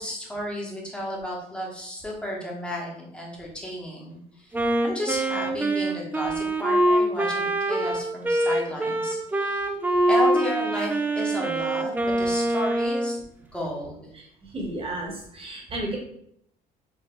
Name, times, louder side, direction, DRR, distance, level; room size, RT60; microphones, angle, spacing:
voice 1, 0.0-4.5 4.8-9.7 10.1-13.2 13.5-14.1, equal, 5° left, -3 dB, 1.2 m, -33 dB
Wind instrument woodwind instrument, 4.5-13.2, right 1 dB, 10° right, 0.5 m, -24 dB
voice 2, 14.5-16.0, right 1 dB, 30° right, -1 dB, 1.4 m, -32 dB
4.9 x 2.5 x 3.2 m, 0.71 s
cardioid pair, 110°, 17 cm